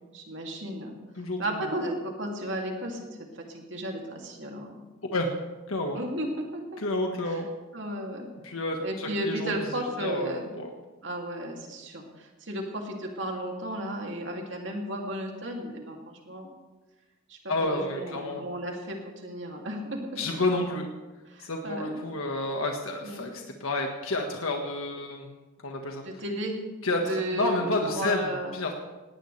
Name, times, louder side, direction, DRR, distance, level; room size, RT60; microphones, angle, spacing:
voice 1, 0.1-0.9 1.4-3.1 3.3-4.8 5.9-6.8 7.2-7.4 7.7-8.3 8.8-10.5 11.0-16.5 17.3-20.2 21.3-21.9 23.0-23.3 26.0-26.5 26.9-28.5, right 1 dB, 60° right, 1 dB, 2.8 m, -34 dB
voice 2, 1.2-1.7 5.1-5.3 5.7-6.0 6.8-7.5 8.4-9.6 10.0-10.7 17.5-18.4 20.2-20.9 21.4-25.3 25.6-26.0 26.8-28.7, left 2 dB, 80° left, 2 dB, 1.6 m, -30 dB
19.0 x 18.5 x 3.4 m, 1.2 s
head